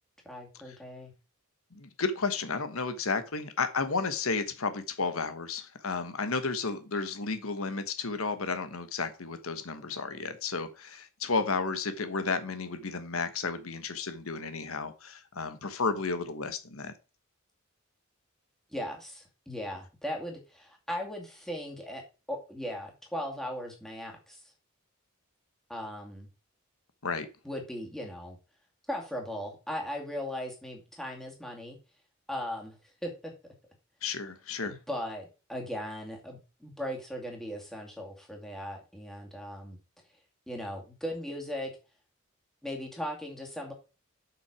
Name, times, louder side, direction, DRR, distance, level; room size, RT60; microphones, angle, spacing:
voice 1, 0.2-1.1 18.7-22.0 22.3-24.4 25.7-26.3 27.4-28.4 28.9-31.8 32.3-32.8 33.0-33.3 34.6-39.8 40.5-41.7 42.6-43.7, equal, ahead, 0 dB, 2.3 m, -38 dB
voice 2, 1.7-16.9 27.0-27.3 34.0-34.8, left 4 dB, 85° left, 10 dB, 1.3 m, -32 dB
7.5 x 5.9 x 4.8 m, 0.31 s
head